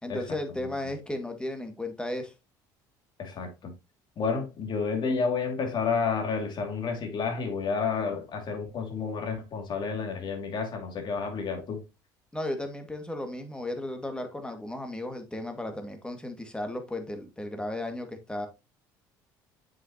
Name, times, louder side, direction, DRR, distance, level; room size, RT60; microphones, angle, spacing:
voice 1, 0.0-2.3 12.3-18.5, left 1 dB, 10° left, 2.1 m, -35 dB
voice 2, 3.2-3.7 4.2-11.8, left 5 dB, 50° left, 2.5 m, -30 dB
7.4 x 6.1 x 2.9 m
hypercardioid pair, 70°, 10 cm